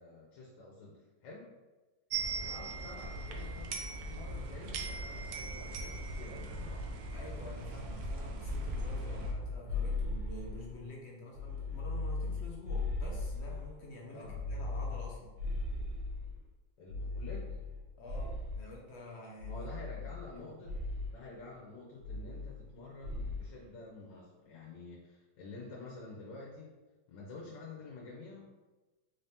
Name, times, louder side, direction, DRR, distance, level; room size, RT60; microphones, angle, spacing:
voice 1, 0.0-1.5 2.3-3.7 4.1-7.1 14.1-14.4 16.8-17.6 19.5-20.8 21.1-26.7 27.1-28.5, left 3 dB, 80° left, -3 dB, 1.4 m, -49 dB
sound 1, 2.1-9.3, right 2 dB, 70° right, 0.9 m, -39 dB
voice 2, 7.1-15.3 18.0-19.7 20.3-20.5, left 1 dB, 65° left, -3 dB, 0.7 m, -48 dB
sound 2, 8.4-10.8 11.3-13.8 14.2-16.4 16.9-18.7 19.4-20.3 20.6-21.1 22.0-22.7 23.0-23.5, left 3 dB, 90° right, 1.6 m, -38 dB
3.8 x 2.7 x 3.4 m, 1.2 s
omnidirectional pair, 1.9 m